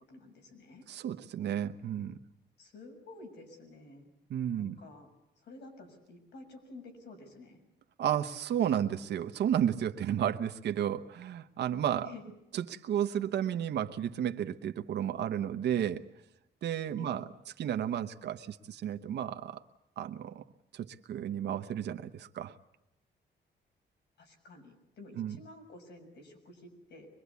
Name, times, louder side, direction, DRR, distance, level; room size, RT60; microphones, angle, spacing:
voice 1, 0.1-0.8 2.6-4.1 4.6-5.1 5.4-7.6 12.0-12.3 17.0-17.2 24.2-27.1, left 2 dB, 70° left, 4 dB, 6.7 m, -51 dB
voice 2, 0.9-2.2 4.3-4.8 8.0-12.1 12.5-16.0 16.6-17.3 17.6-19.6 20.0-20.4 20.7-22.6 25.2-25.4, right 10 dB, 70° right, 6 dB, 1.0 m, -32 dB
24.0 x 22.0 x 8.3 m, 0.85 s
cardioid pair, 150°, 18 cm